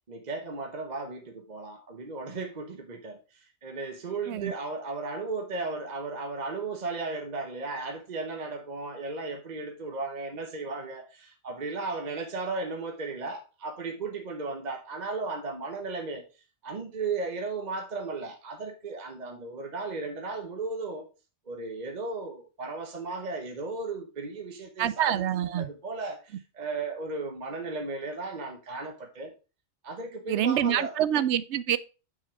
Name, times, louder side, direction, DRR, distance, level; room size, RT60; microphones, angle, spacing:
voice 1, 0.1-16.2 16.6-21.1 21.5-29.3 29.8-31.0, right 3 dB, 40° right, 1.0 m, -35 dB
voice 2, 24.8-25.7 30.3-31.8, right 10 dB, 75° right, 0.9 m, -26 dB
6.2 x 5.7 x 4.8 m
omnidirectional pair, 1.2 m